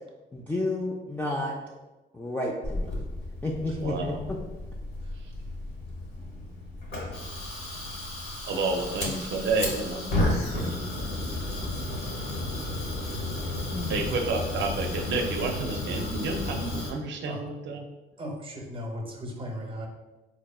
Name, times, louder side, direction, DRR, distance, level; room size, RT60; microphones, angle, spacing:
voice 1, 0.3-1.8 2.1-2.9 3.4-4.4 8.8-8.9 13.7-14.0, left 2 dB, 10° left, -3 dB, 0.4 m, -31 dB
Fire, 2.6-16.9, left 1 dB, 55° left, 1.2 m, -33 dB
voice 2, 3.8-4.2 8.5-11.2 13.9-17.9, right 3 dB, 65° right, 4 dB, 0.6 m, -30 dB
voice 3, 18.2-19.9, equal, 25° right, 2 dB, 0.8 m, -36 dB
4.1 x 2.9 x 2.3 m, 1.1 s
cardioid pair, 90°, 20 cm